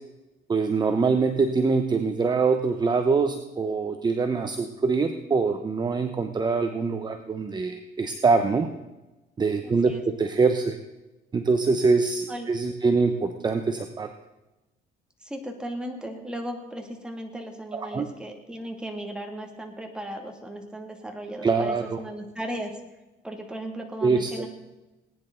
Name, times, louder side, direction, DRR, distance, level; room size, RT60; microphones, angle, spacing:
voice 1, 0.5-8.7 9.4-10.8 11.3-14.1 17.7-18.1 21.4-22.0 24.0-24.3, right 4 dB, 25° right, 7 dB, 1.0 m, -24 dB
voice 2, 9.6-10.0 12.3-12.5 15.2-22.8 23.2-24.5, right 1 dB, 5° right, 1 dB, 2.4 m, -36 dB
19.5 x 10.0 x 3.9 m, 1.0 s
cardioid pair, 110°, 17 cm